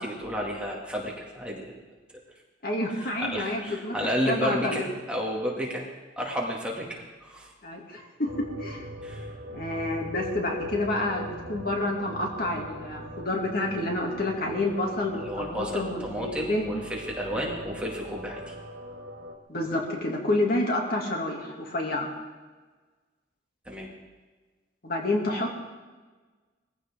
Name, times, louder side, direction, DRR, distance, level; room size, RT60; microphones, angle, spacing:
voice 1, 0.0-1.8 3.2-5.9 6.2-7.5 9.0-9.3 15.2-18.5 23.6-23.9, equal, 5° right, -3 dB, 2.4 m, -32 dB
voice 2, 2.6-4.0 4.3-4.8 7.6-8.9 9.5-16.6 19.5-22.1 24.8-25.5, left 1 dB, 50° left, 0 dB, 2.6 m, -29 dB
sound 1, 8.3-19.4, equal, 85° right, 1.9 m, -41 dB
21.5 x 15.5 x 3.8 m, 1.4 s
head